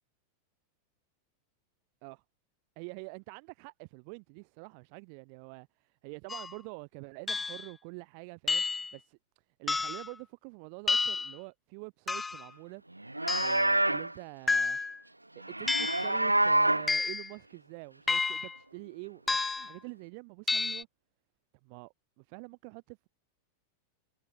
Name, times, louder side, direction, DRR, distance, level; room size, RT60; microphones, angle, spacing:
voice 1, 2.7-9.2 9.6-12.8 13.4-14.8 15.3-20.9 21.6-23.1, right 40 dB or more, 45° right, 1.5 m, -46 dB
sound 1, 6.3-6.5 7.3-7.7 8.5-8.9 9.7-10.1 10.9-11.4 12.1-12.5 13.3-13.7 14.5-15.0 15.7-16.1 16.9-17.3 18.1-18.6 19.3-19.7 20.5-20.8, left 4 dB, 10° left, 1.0 m, -30 dB
Livestock farm animals working animals, 13.0-14.1 15.4-16.9, right 1 dB, 85° right, 0.6 m, -27 dB
figure-of-eight pair, 90°, 0 cm